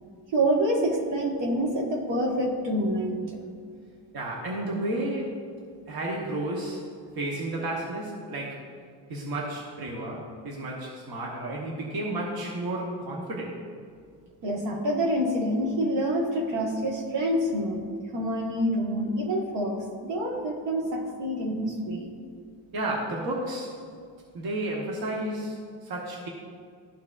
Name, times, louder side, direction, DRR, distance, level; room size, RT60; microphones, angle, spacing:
voice 1, 0.3-3.4 14.4-22.1, right 1 dB, 80° right, -1 dB, 1.4 m, -27 dB
voice 2, 4.1-5.4 5.9-6.8 7.2-8.6 9.1-13.6 22.7-23.8 24.3-26.3, right 1 dB, 55° right, -2 dB, 1.1 m, -32 dB
13.0 x 4.7 x 2.4 m, 2.1 s
cardioid pair, 150°, 43 cm